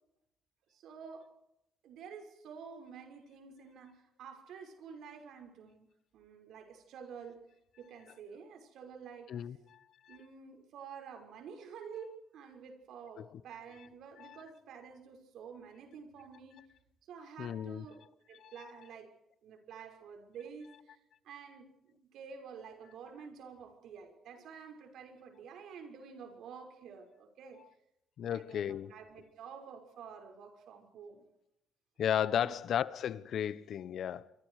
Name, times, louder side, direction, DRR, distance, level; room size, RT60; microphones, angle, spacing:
voice 1, 0.7-1.3 1.8-7.4 7.8-9.3 10.1-16.6 17.0-18.0 18.3-19.1 19.4-21.0 21.2-27.6 28.2-31.3 32.4-32.6, right 6 dB, 80° right, 6.0 m, -50 dB
voice 2, 9.3-10.2 13.2-13.4 14.2-14.4 17.4-17.8 18.4-18.5 28.2-28.9 32.0-34.3, left 9 dB, 65° left, 1.1 m, -35 dB
28.0 x 25.0 x 5.0 m
cardioid pair, 90°, 0 cm